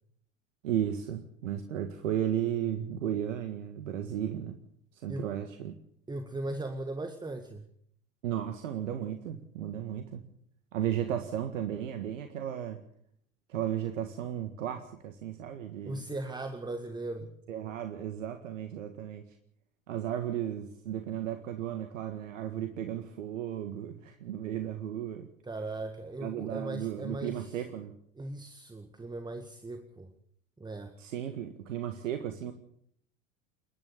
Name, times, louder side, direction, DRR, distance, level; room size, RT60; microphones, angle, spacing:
voice 1, 0.6-4.6 4.9-5.7 8.2-10.3 10.7-12.8 13.5-16.1 17.5-19.3 19.9-25.3 26.2-27.9 31.0-32.5, right 10 dB, 65° right, 7 dB, 1.9 m, -34 dB
voice 2, 6.1-7.7 15.9-17.3 25.4-27.6 28.2-30.1 30.6-30.9, right 2 dB, 10° right, 6 dB, 1.8 m, -38 dB
29.0 x 11.0 x 8.3 m, 0.70 s
figure-of-eight pair, 80°, 41 cm